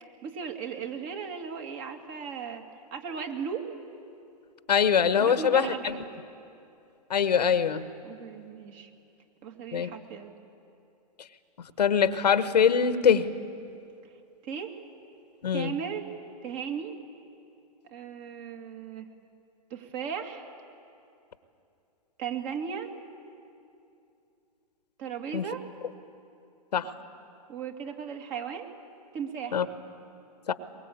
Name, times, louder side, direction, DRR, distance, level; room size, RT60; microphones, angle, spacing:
voice 1, 0.2-2.6 2.9-3.7 5.2-6.0 8.0-8.9 9.4-10.3 14.4-14.8 15.5-16.1 16.4-17.0 17.9-19.1 19.7-20.5 22.2-22.9 25.0-25.6 27.5-28.7 29.1-29.6, right 7 dB, 40° right, 4 dB, 2.5 m, -36 dB
voice 2, 4.7-6.0 7.1-7.8 9.7-9.9 11.8-13.3 15.4-15.7 25.3-25.4 26.7-26.9 29.5-29.6 30.5-30.6, left 7 dB, 85° left, 12 dB, 1.3 m, -23 dB
23.0 x 21.5 x 8.7 m, 2.6 s
hypercardioid pair, 125°, 20 cm